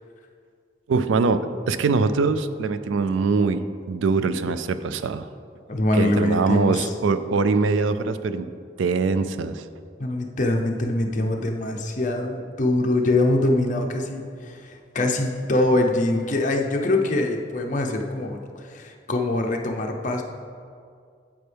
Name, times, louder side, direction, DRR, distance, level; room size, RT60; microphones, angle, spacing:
voice 1, 0.9-5.3 6.0-8.5 8.8-9.6, right 4 dB, 85° right, 12 dB, 0.4 m, -23 dB
voice 2, 5.7-6.9 10.0-20.2, left 2 dB, 40° left, 2 dB, 0.7 m, -23 dB
8.8 x 7.7 x 3.4 m, 2.3 s
head